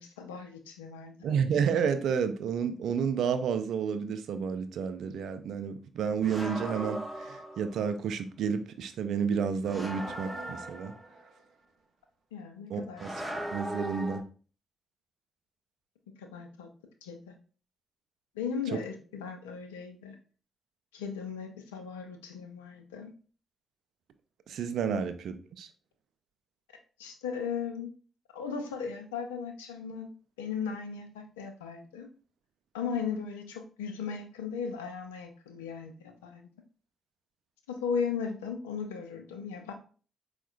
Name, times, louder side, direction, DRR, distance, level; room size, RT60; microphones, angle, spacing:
voice 1, 0.0-1.4 12.3-13.0 13.7-13.8 16.2-16.7 17.0-17.3 18.3-20.2 20.9-23.1 24.9-25.0 27.0-27.9 28.3-30.1 30.4-32.1 32.7-36.5 37.7-39.7, left 6 dB, 90° left, 5 dB, 0.4 m, -37 dB
voice 2, 1.2-10.9 12.7-13.1 13.5-14.2 24.5-25.7, right 6 dB, 70° right, 9 dB, 0.3 m, -31 dB
sound 1, 6.2-7.9 9.6-11.3 13.0-14.2, right 1 dB, 10° right, 0.9 m, -38 dB
4.4 x 2.1 x 2.4 m, 0.39 s
hypercardioid pair, 40°, 0 cm